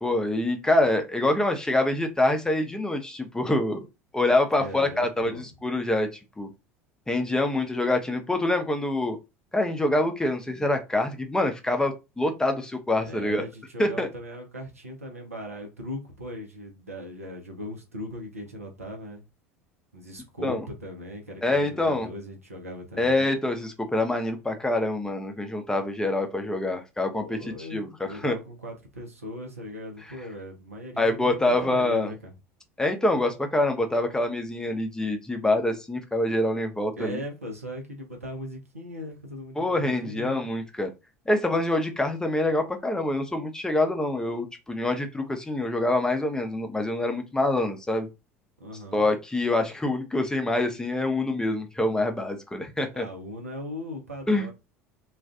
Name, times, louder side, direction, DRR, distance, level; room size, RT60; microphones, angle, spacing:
voice 1, 0.0-3.9 4.1-6.1 6.4-6.5 7.1-9.2 9.5-13.4 13.8-14.1 20.4-20.6 21.4-22.1 23.0-28.4 31.0-32.1 32.8-37.2 39.6-40.9 41.3-48.1 48.9-53.1 54.3-54.5, left 2 dB, 10° left, 0.6 m, -25 dB
voice 2, 4.5-5.5 13.0-19.2 19.9-23.3 27.1-32.3 37.0-40.3 48.6-49.0 52.9-54.5, left 1 dB, 85° right, 0.8 m, -39 dB
2.4 x 2.4 x 3.5 m
figure-of-eight pair, 70°, 8 cm